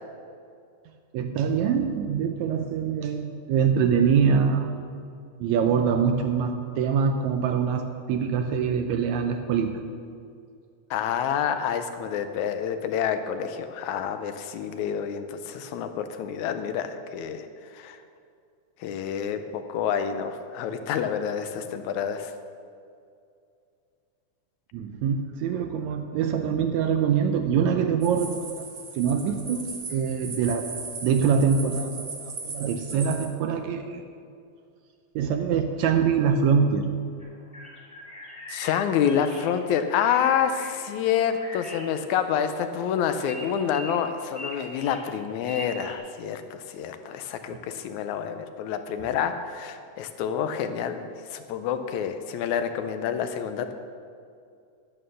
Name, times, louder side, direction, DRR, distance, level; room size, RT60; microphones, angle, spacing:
voice 1, 1.1-4.7 5.4-9.7 24.7-28.7 29.0-30.7 31.0-34.0 35.2-36.9, right 6 dB, 80° right, 5 dB, 1.9 m, -24 dB
voice 2, 10.9-17.5 17.7-18.0 18.8-22.3 38.5-53.7, left 8 dB, 80° left, 8 dB, 2.0 m, -28 dB
sound 1, 28.0-33.3, right 4 dB, 50° right, 1.0 m, -38 dB
sound 2, 37.2-45.9, equal, 5° right, 1.8 m, -42 dB
11.0 x 8.8 x 6.3 m, 2.4 s
omnidirectional pair, 3.5 m